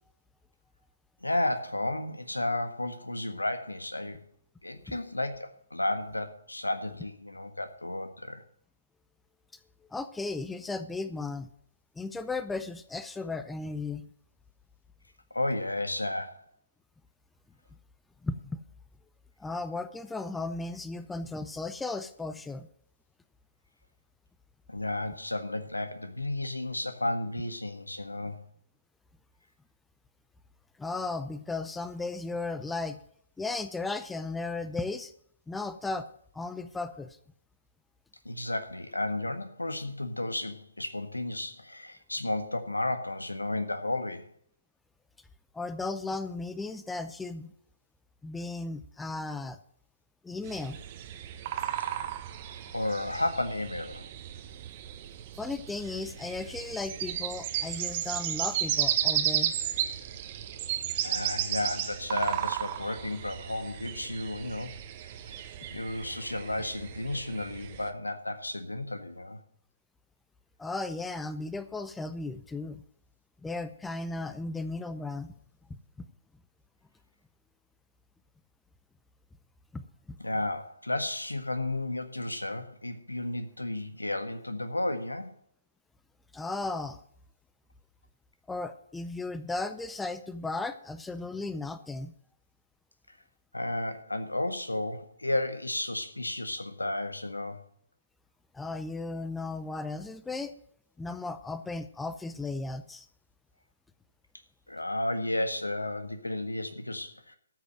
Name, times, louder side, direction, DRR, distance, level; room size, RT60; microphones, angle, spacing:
voice 1, 1.2-4.2 4.6-8.4 15.3-16.4 24.7-28.4 38.2-44.3 52.7-54.1 61.0-64.8 65.7-69.4 80.2-85.3 93.5-97.6 104.7-107.4, left 2 dB, 85° left, 9 dB, 1.6 m, -33 dB
voice 2, 9.9-11.5 12.0-14.1 18.2-18.6 19.4-22.7 30.8-33.0 33.4-35.1 35.5-36.1 36.3-37.2 45.5-47.5 48.2-49.6 50.2-50.8 55.4-59.5 70.6-72.8 73.4-75.3 76.0-76.1 79.7-79.8 80.1-80.2 86.3-87.0 88.5-92.1 98.5-100.5 101.0-103.1, left 3 dB, 5° left, 12 dB, 0.6 m, -35 dB
sound 1, 50.4-67.9, right 11 dB, 35° right, 1.1 m, -34 dB
13.5 x 6.3 x 7.8 m, 0.65 s
figure-of-eight pair, 135°, 0 cm